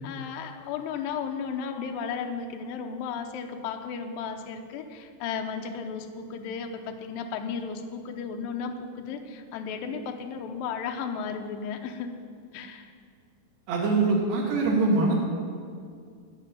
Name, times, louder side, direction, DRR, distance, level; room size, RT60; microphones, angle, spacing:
voice 1, 0.0-12.1 12.5-12.9, left 6 dB, 75° left, 4 dB, 2.4 m, -34 dB
voice 2, 13.7-15.1, right 3 dB, 85° right, -4 dB, 4.6 m, -23 dB
15.0 x 5.7 x 9.2 m, 2.2 s
omnidirectional pair, 4.6 m